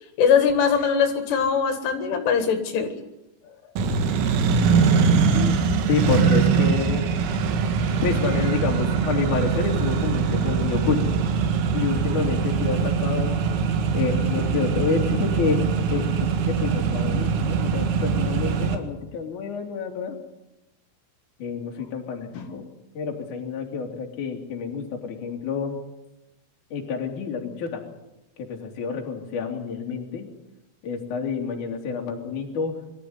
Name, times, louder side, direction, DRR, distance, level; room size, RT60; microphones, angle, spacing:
voice 1, 0.2-3.0 22.3-22.5, left 6 dB, 75° left, 6 dB, 4.2 m, -21 dB
Accelerating revving vroom, 3.8-18.8, right 5 dB, 90° right, 4.5 m, -22 dB
voice 2, 5.9-7.0 8.0-11.1 11.7-13.4 13.9-15.6 15.9-20.2 21.4-22.7 22.9-25.8 26.7-27.8 28.4-30.3 30.8-32.7, left 5 dB, 45° left, 1 dB, 3.8 m, -28 dB
23.5 x 14.0 x 9.5 m, 0.93 s
omnidirectional pair, 5.7 m